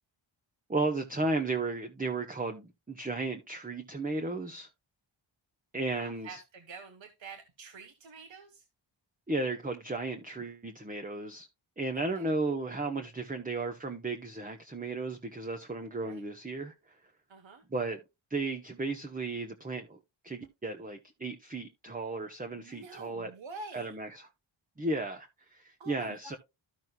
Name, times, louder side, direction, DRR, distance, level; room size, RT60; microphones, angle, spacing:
voice 1, 0.7-4.7 5.7-6.4 9.3-11.5 11.8-16.7 17.7-18.0 18.3-20.0 20.2-23.3 23.7-24.3 24.8-26.4, right 3 dB, 15° right, 0.9 m, -34 dB
voice 2, 6.0-8.6 12.0-12.3 16.0-16.2 17.3-17.6 22.5-23.9 25.8-26.4, right 4 dB, 70° right, 1.2 m, -47 dB
13.5 x 6.2 x 2.3 m
wide cardioid pair, 135°, 48 cm